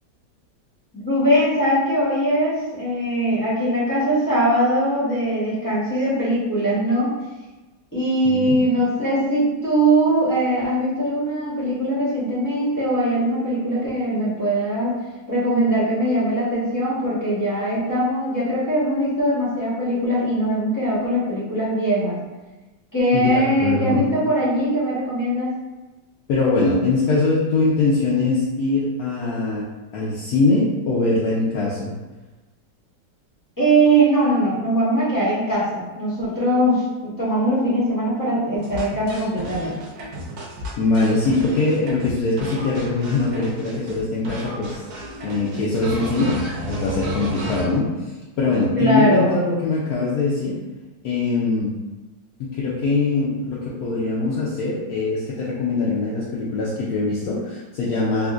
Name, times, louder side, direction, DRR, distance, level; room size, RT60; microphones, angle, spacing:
voice 1, 0.9-7.2 7.9-14.9 15.3-22.2 22.9-25.5 33.6-39.8 48.8-49.4, right 1 dB, 15° left, -9 dB, 0.7 m, -21 dB
voice 2, 8.2-8.6 23.1-24.0 26.3-29.7 29.9-31.9 40.8-44.8 45.2-46.4 46.7-50.6 51.0-51.7 52.4-58.3, left 3 dB, 70° left, -6 dB, 1.0 m, -22 dB
sound 1, 38.6-44.0 44.2-47.6, right 1 dB, 70° right, 1.1 m, -33 dB
3.6 x 2.4 x 2.4 m, 1.2 s
omnidirectional pair, 1.8 m